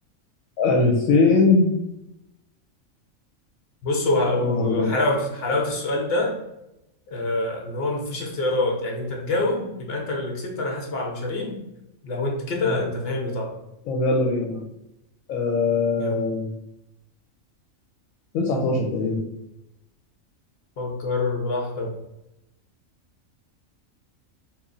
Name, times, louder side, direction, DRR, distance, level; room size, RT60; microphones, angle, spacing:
voice 1, 0.6-1.7 4.4-4.9 12.6-12.8 13.8-14.6 15.3-16.5 18.3-19.2, left 3 dB, 80° left, -1 dB, 1.0 m, -21 dB
voice 2, 3.8-6.4 7.1-11.6 12.0-13.5 16.0-16.2 20.8-21.9, left 2 dB, 50° left, 0 dB, 1.0 m, -25 dB
3.1 x 2.5 x 3.7 m, 0.88 s
omnidirectional pair, 1.4 m